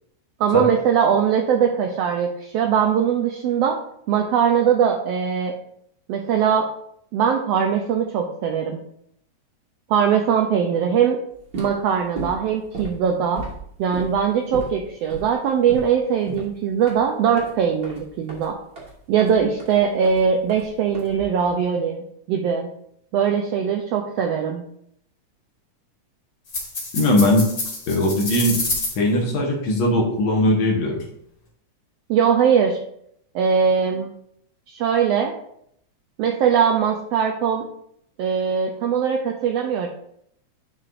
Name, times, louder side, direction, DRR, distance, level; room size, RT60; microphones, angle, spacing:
voice 1, 0.4-3.8 4.1-5.5 6.1-6.7 7.1-8.8 9.9-11.2 11.6-13.4 13.8-18.6 19.1-22.7 23.1-24.6 32.1-32.8 33.3-34.1 34.7-35.3 36.2-37.7 38.2-39.9, right 7 dB, 80° right, 3 dB, 1.4 m, -21 dB
sound 1, 11.4-21.6, right 3 dB, 45° right, 2.2 m, -37 dB
sound 2, 26.5-28.9, left 3 dB, 35° left, 1.7 m, -28 dB
voice 2, 26.9-27.5 27.9-28.6 29.0-31.0, left 1 dB, 65° left, -2 dB, 2.3 m, -19 dB
9.5 x 5.9 x 2.6 m, 0.71 s
omnidirectional pair, 3.5 m